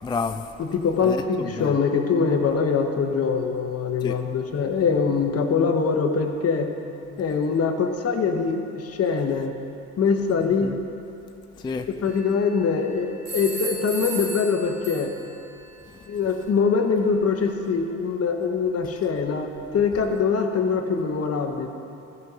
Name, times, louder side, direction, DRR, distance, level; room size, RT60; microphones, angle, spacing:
voice 1, 0.0-0.4 1.0-1.8 4.0-4.2 10.6-10.8 11.6-11.9, left 4 dB, 15° left, 7 dB, 0.3 m, -30 dB
voice 2, 0.6-6.7 7.2-9.5 10.0-10.7 12.0-15.1 16.1-21.7, left 5 dB, 50° left, 4 dB, 1.1 m, -23 dB
sound 1, 12.1-12.7 13.2-15.4, right 2 dB, 60° right, 2.2 m, -35 dB
14.0 x 5.4 x 5.5 m, 2.8 s
cardioid pair, 90°, 30 cm